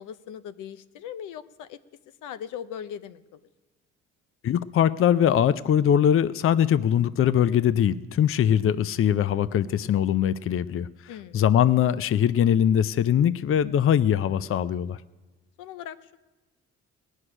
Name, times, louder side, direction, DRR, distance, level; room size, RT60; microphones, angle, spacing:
voice 1, 0.0-1.8 2.2-3.4 11.1-11.4 15.6-16.2, left 9 dB, 85° left, 13 dB, 0.7 m, -39 dB
voice 2, 4.4-10.9 11.3-15.0, left 9 dB, 45° left, 16 dB, 0.5 m, -22 dB
18.0 x 6.4 x 9.8 m, 1.2 s
cardioid pair, 90°, 30 cm